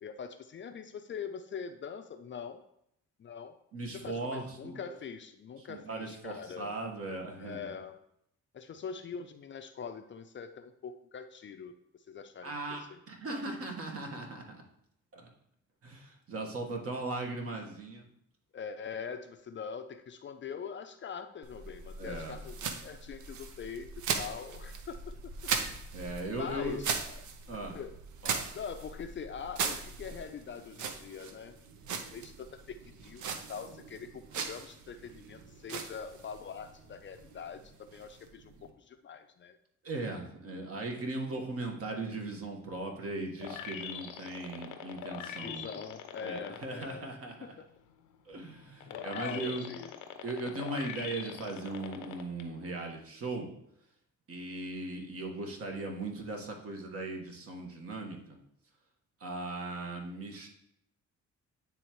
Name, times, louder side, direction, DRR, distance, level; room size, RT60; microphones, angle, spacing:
voice 1, 0.0-2.6 3.2-3.6 3.9-6.7 7.4-8.0 8.5-11.7 12.1-13.0 13.3-13.4 18.5-23.9 24.2-25.1 26.3-27.2 27.7-28.0 28.5-31.6 31.9-39.6 45.3-47.1 47.4-47.7 48.9-50.0, left 6 dB, 40° left, 8 dB, 0.5 m, -43 dB
voice 2, 3.7-4.8 5.6-7.6 12.4-14.4 15.1-15.3 15.8-18.1 22.0-22.4 25.9-26.8 27.5-27.8 28.2-28.5 39.8-45.7 46.2-47.5 48.2-49.7 50.2-53.5 54.3-58.4 59.2-60.5, right 2 dB, 50° right, 2 dB, 1.4 m, -38 dB
sound 1, 21.4-38.7, right 6 dB, 75° right, 0.7 m, -39 dB
sound 2, 43.4-46.8 47.3-52.4 52.9-53.0, left 9 dB, 90° left, 0.7 m, -43 dB
9.5 x 3.5 x 3.0 m, 0.75 s
cardioid pair, 90°, 30 cm